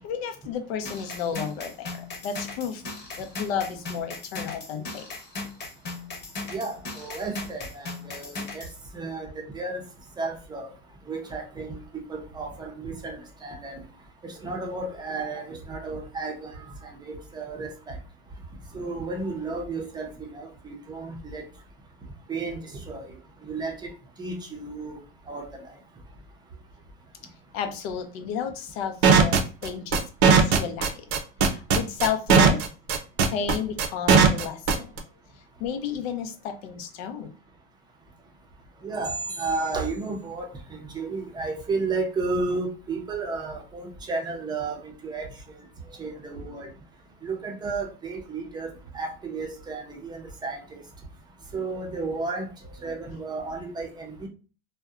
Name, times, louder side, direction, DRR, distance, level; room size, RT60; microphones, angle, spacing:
voice 1, 0.0-2.8 3.2-5.0 27.5-31.1 31.4-32.6 33.3-34.9 35.6-37.3, left 7 dB, 80° left, 7 dB, 0.6 m, -32 dB
sound 1, 0.8-8.7, left 3 dB, 35° left, 0.9 m, -37 dB
voice 2, 6.5-8.7 8.9-9.8 10.2-10.7 11.1-11.8 12.1-13.8 14.2-18.0 18.7-21.4 22.3-23.9 24.2-25.0 25.3-25.7 38.8-45.3 46.0-46.7 47.2-50.8 51.5-52.5 52.8-54.3, right 3 dB, 15° right, 1 dB, 0.5 m, -33 dB
sound 2, 29.0-35.0, right 6 dB, 55° right, 0.6 m, -17 dB
2.7 x 2.1 x 2.3 m, 0.35 s
supercardioid pair, 125°, 30 cm